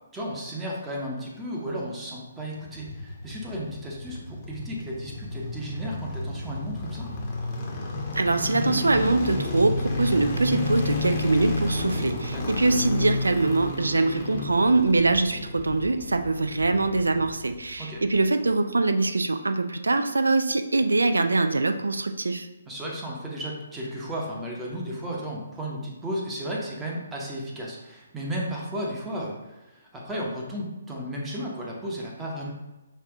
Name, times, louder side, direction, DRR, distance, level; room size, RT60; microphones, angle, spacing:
voice 1, 0.1-7.1 12.3-12.6 17.8-18.0 22.7-32.5, equal, 10° right, -3 dB, 0.8 m, -34 dB
sound 1, 2.6-17.8 18.0-18.1, left 2 dB, 30° left, 0.8 m, -32 dB
voice 2, 8.1-22.5, right 3 dB, 70° right, 8 dB, 0.3 m, -23 dB
5.3 x 2.5 x 3.5 m, 1.0 s
figure-of-eight pair, 135°, 0 cm